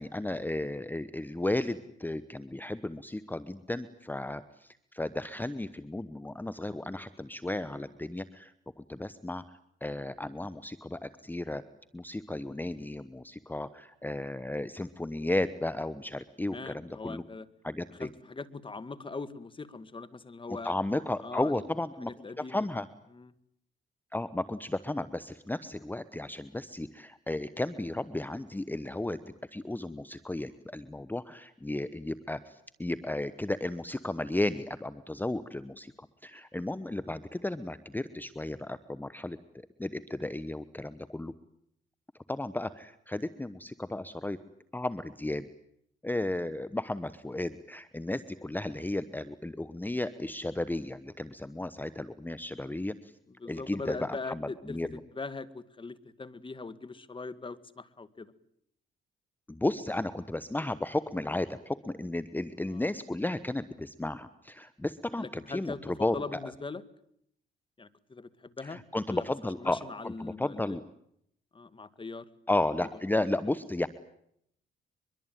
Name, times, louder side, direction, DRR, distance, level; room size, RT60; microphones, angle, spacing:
voice 1, 0.0-8.5 8.8-9.4 9.8-11.6 11.9-17.2 17.6-18.1 20.6-22.1 22.4-22.9 24.1-29.2 29.5-39.4 39.8-41.3 42.3-44.4 44.7-45.5 46.0-52.9 53.4-54.9 59.5-66.5 68.7-70.8 72.5-73.9, left 2 dB, 10° left, 15 dB, 1.1 m, -34 dB
voice 2, 16.4-17.5 17.9-20.7 21.2-21.6 22.0-22.7 23.1-23.3 53.3-58.3 62.7-62.9 65.2-66.8 67.8-68.8 69.1-69.3 69.6-70.8 71.5-72.3 72.8-72.9, left 3 dB, 25° left, 15 dB, 1.8 m, -41 dB
23.5 x 23.0 x 9.2 m, 0.72 s
cardioid pair, 90°, 20 cm